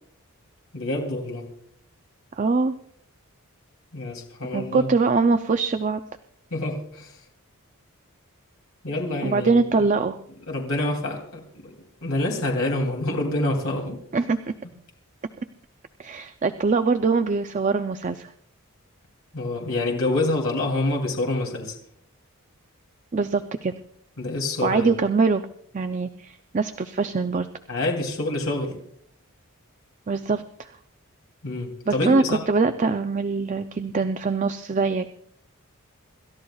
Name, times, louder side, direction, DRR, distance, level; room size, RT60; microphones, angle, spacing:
voice 1, 0.7-1.5 3.9-4.9 6.5-7.2 8.8-9.6 10.5-11.7 12.0-14.0 19.3-21.7 24.2-24.9 27.7-28.8 31.4-32.4, left 2 dB, 80° left, 0 dB, 3.0 m, -27 dB
voice 2, 2.4-2.7 4.5-6.0 9.2-10.2 14.1-14.4 16.0-18.3 23.1-23.7 24.6-25.4 25.7-27.5 30.1-30.7 31.9-35.1, right 4 dB, 35° right, 9 dB, 0.4 m, -23 dB
28.0 x 13.0 x 2.3 m, 0.65 s
head